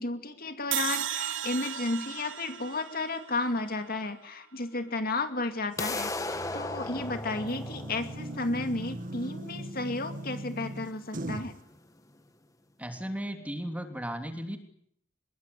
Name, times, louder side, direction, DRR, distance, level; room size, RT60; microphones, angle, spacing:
voice 1, 0.0-11.5, left 2 dB, 50° left, 7 dB, 2.4 m, -33 dB
sound 1, 0.7-3.9, right 11 dB, 70° right, 1.2 m, -35 dB
sound 2, 5.8-11.8, left 2 dB, 15° left, 1.5 m, -38 dB
sound 3, 5.8-11.6, right 1 dB, 45° right, 1.7 m, -40 dB
voice 2, 12.8-14.6, equal, 5° right, 5 dB, 3.2 m, -35 dB
25.0 x 21.5 x 9.8 m, 0.69 s
head